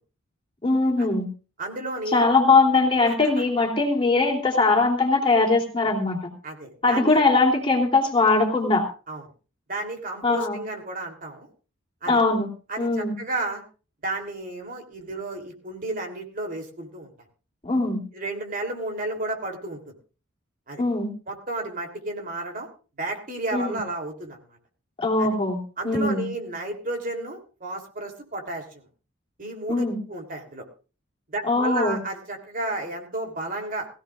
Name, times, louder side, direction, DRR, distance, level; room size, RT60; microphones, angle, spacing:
voice 1, 0.6-1.3 2.1-6.2 6.8-8.8 10.2-10.6 12.1-12.5 12.8-13.1 17.6-18.0 20.8-21.1 23.5-23.8 25.0-25.6 25.8-26.3 29.7-30.0 31.5-32.0, left 3 dB, 25° left, 1 dB, 3.3 m, -21 dB
voice 2, 1.6-2.2 3.0-3.4 6.4-7.2 9.1-9.2 9.7-11.5 12.0-12.2 12.7-13.6 14.0-17.1 18.1-19.9 20.7-20.8 21.3-22.7 23.0-24.6 25.2-25.4 25.8-28.8 29.4-30.6 31.3-33.9, right 2 dB, 45° right, 3 dB, 3.2 m, -32 dB
21.5 x 16.0 x 2.5 m, 0.36 s
head